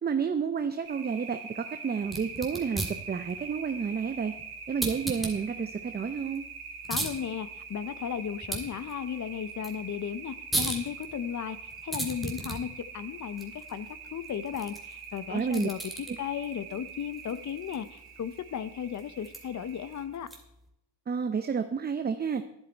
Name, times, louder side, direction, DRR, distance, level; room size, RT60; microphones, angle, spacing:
voice 1, 0.0-4.3 4.7-6.4 15.3-15.7 16.1-16.2 21.1-22.4, right 6 dB, 25° right, 8 dB, 0.6 m, -30 dB
sound 1, 0.8-20.0, right 5 dB, 55° right, 3.1 m, -44 dB
sound 2, 2.0-20.7, right 1 dB, ahead, 2.5 m, -39 dB
voice 2, 6.9-11.6 11.8-20.3, left 8 dB, 40° left, 14 dB, 0.7 m, -35 dB
11.5 x 10.5 x 4.5 m, 0.82 s
cardioid pair, 110°, 42 cm